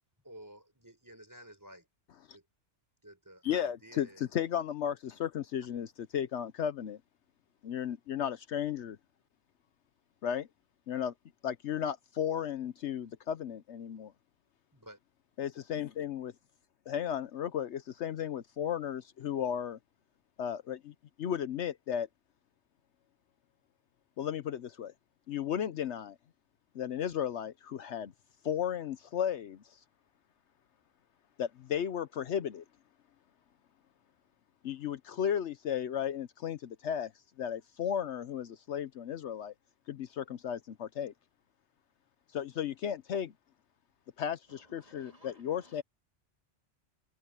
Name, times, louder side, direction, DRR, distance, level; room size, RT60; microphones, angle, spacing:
voice 1, 0.2-1.9 2.3-2.5 3.0-4.3 14.7-15.0, right 1 dB, 15° right, 4.4 m, -52 dB
voice 2, 3.4-7.0 7.6-9.0 10.2-10.5 10.9-11.1 11.4-14.1 15.4-16.3 16.9-19.8 20.4-22.1 24.2-24.9 25.3-26.2 26.7-28.1 28.4-29.8 31.4-32.6 34.6-37.1 37.4-39.5 39.9-41.1 42.3-43.3 44.2-45.8, left 9 dB, 70° left, 1.0 m, -34 dB
voice 3, 44.5-45.8, left 2 dB, 30° left, 2.5 m, -59 dB
omnidirectional pair, 1.2 m